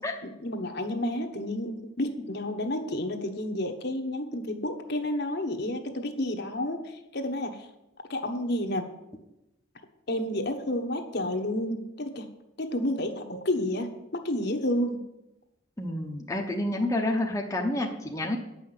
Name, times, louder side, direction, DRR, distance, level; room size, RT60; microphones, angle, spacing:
voice 1, 0.2-7.7 8.1-8.9 10.1-12.3 12.6-15.0, left 1 dB, 50° left, 5 dB, 1.1 m, -30 dB
voice 2, 15.8-18.4, left 1 dB, 15° left, 0 dB, 0.9 m, -29 dB
9.7 x 5.7 x 8.0 m, 0.92 s
head